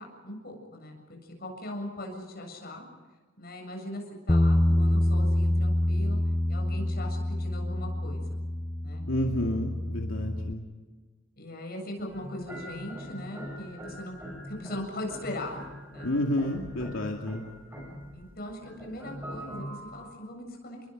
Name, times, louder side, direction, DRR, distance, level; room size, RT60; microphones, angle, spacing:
voice 1, 0.0-2.8 3.4-6.2 6.5-8.4 8.8-9.0 11.4-15.6 15.9-16.1 18.1-20.9, left 1 dB, 50° left, 2 dB, 7.5 m, -40 dB
Bass guitar, 4.3-10.5, left 1 dB, 15° left, 0.6 m, -26 dB
voice 2, 9.1-10.7 16.0-17.4, left 1 dB, 85° left, 1 dB, 2.4 m, -30 dB
sound 1, 12.1-20.2, equal, 10° right, 7.8 m, -42 dB
30.0 x 22.5 x 5.3 m, 1.4 s
head